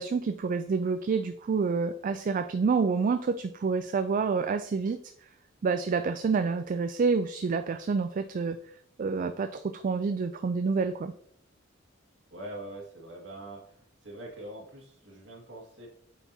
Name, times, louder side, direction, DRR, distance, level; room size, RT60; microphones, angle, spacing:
voice 1, 0.0-5.0 5.6-8.6 9.0-11.1, right 5 dB, 45° right, 9 dB, 0.3 m, -28 dB
voice 2, 12.3-15.9, right 1 dB, 70° right, -1 dB, 2.0 m, -43 dB
8.8 x 4.7 x 2.8 m, 0.63 s
head